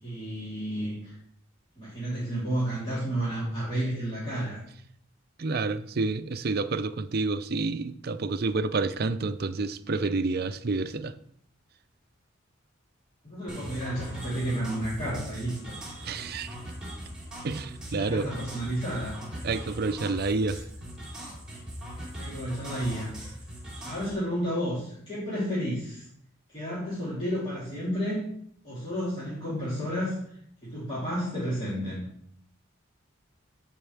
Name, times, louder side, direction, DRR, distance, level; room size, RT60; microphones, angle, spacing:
voice 1, 0.0-1.1 1.8-4.6 13.2-15.8 17.9-19.2 22.2-23.1 23.8-26.1 26.5-28.3 28.6-32.0, equal, 25° left, -10 dB, 3.4 m, -31 dB
voice 2, 5.4-11.1 16.0-16.5 17.4-18.3 19.4-20.7, right 3 dB, 50° right, 11 dB, 0.5 m, -29 dB
sound 1, 13.5-24.1, right 1 dB, 5° right, 3.7 m, -40 dB
15.0 x 5.5 x 3.4 m, 0.69 s
head